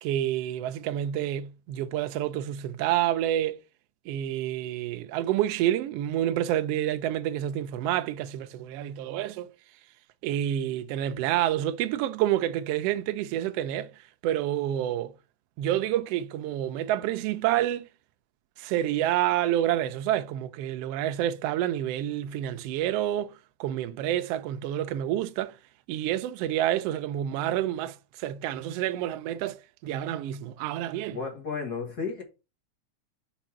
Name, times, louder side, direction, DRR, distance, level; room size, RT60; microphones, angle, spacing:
voice 1, 0.0-3.6 4.1-9.5 10.2-13.9 14.2-15.1 15.6-17.9 18.6-23.3 23.6-25.6 25.9-31.2, right 12 dB, 85° right, 1.4 m, -28 dB
voice 2, 31.1-32.2, left 5 dB, 40° left, 1.7 m, -33 dB
5.2 x 4.1 x 5.8 m
omnidirectional pair, 3.4 m